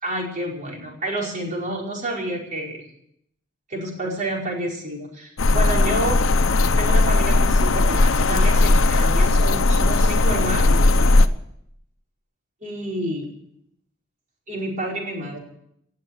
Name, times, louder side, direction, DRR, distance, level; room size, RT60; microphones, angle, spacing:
voice 1, 0.0-2.8 3.7-6.2 6.8-10.8 12.6-13.3 14.5-15.4, right 1 dB, 40° right, -2 dB, 5.1 m, -29 dB
sound 1, 5.4-11.3, left 2 dB, 90° left, 0.8 m, -17 dB
18.5 x 7.5 x 9.2 m, 0.74 s
head